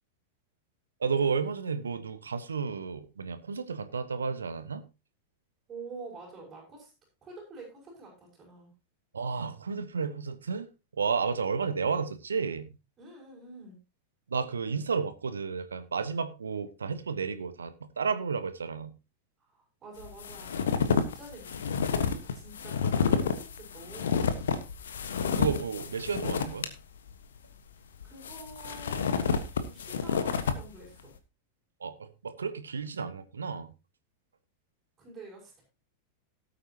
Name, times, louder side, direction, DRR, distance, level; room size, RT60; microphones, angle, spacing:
voice 1, 1.0-4.8 9.1-10.7 10.9-12.7 14.3-18.9 25.3-26.7 31.8-33.7, right 5 dB, 70° right, 1.3 m, -32 dB
voice 2, 5.7-6.9 7.2-8.7 13.0-13.8 19.4-21.9 22.3-24.7 28.0-31.1 35.0-35.6, right 2 dB, 20° right, 6.4 m, -48 dB
sound 1, 20.0-26.7 27.1-27.2 28.0-30.6, left 6 dB, 65° left, 1.4 m, -29 dB
18.0 x 8.5 x 2.9 m
figure-of-eight pair, 90°, 0 cm